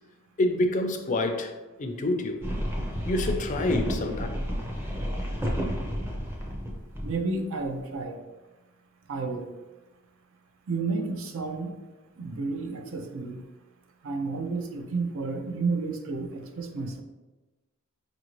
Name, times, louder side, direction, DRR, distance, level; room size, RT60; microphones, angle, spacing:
voice 1, 0.4-1.5 1.8-2.5 3.1-4.3, left 2 dB, 35° left, 5 dB, 0.4 m, -27 dB
sound 1, 2.4-7.2, equal, 10° right, 0.6 m, -31 dB
voice 2, 7.0-8.2 9.1-9.5 10.7-11.7 12.2-13.4 14.0-17.0, right 3 dB, 65° right, 5 dB, 0.5 m, -31 dB
4.8 x 2.6 x 3.0 m, 1.1 s
head